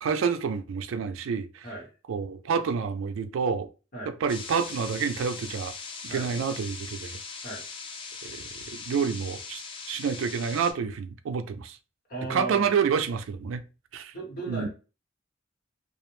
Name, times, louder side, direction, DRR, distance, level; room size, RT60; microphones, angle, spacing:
voice 1, 0.0-1.7 2.1-3.7 4.1-5.7 6.0-7.2 8.2-9.6 9.9-11.8 12.3-13.6 13.9-14.1 14.5-14.7, right 6 dB, 90° right, 0.3 m, -28 dB
sound 1, 4.3-10.7, left 4 dB, 25° left, 0.3 m, -40 dB
voice 2, 12.1-12.7 14.1-14.7, right 2 dB, 50° left, 1.1 m, -36 dB
2.4 x 2.0 x 3.0 m
head